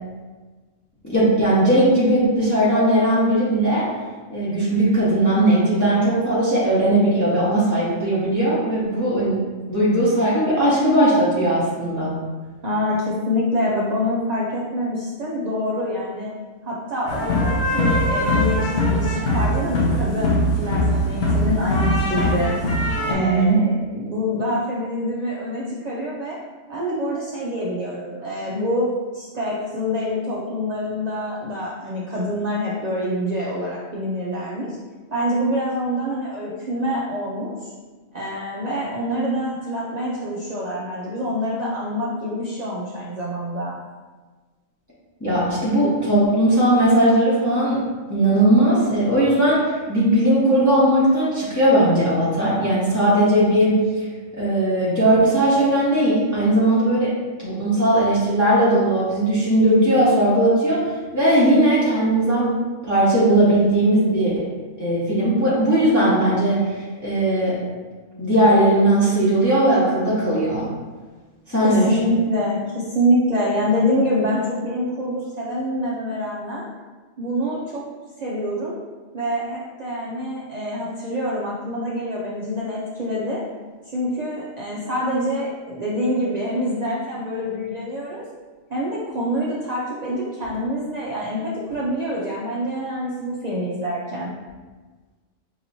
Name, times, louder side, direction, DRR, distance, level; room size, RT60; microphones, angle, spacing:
voice 1, 1.0-3.9 4.3-9.4 9.7-12.1 23.1-23.6 45.2-47.8 48.1-54.0 54.4-57.1 57.4-60.8 61.1-62.5 62.8-64.4 64.8-66.6 67.0-67.6 68.2-70.7 71.5-72.0, right 1 dB, 15° left, -9 dB, 0.8 m, -18 dB
voice 2, 12.6-16.3 16.6-22.5 23.1-26.4 26.7-28.9 29.1-34.8 35.1-37.7 38.1-43.7 71.6-76.7 77.2-77.8 78.2-78.8 79.1-83.4 83.9-88.2 88.7-94.3, equal, 60° right, -6 dB, 0.4 m, -26 dB
sound 1, 17.1-23.1, left 1 dB, 55° left, 0.8 m, -21 dB
4.8 x 2.9 x 2.6 m, 1.3 s
omnidirectional pair, 1.4 m